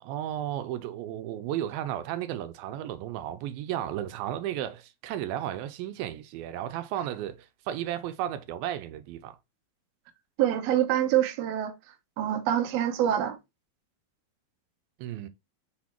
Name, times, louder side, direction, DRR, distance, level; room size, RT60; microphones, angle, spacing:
voice 1, 0.0-9.4 15.0-15.3, right 11 dB, 85° right, 2.4 m, -34 dB
voice 2, 10.4-13.4, right 11 dB, 70° right, 1.6 m, -26 dB
5.4 x 4.2 x 4.3 m
omnidirectional pair, 4.3 m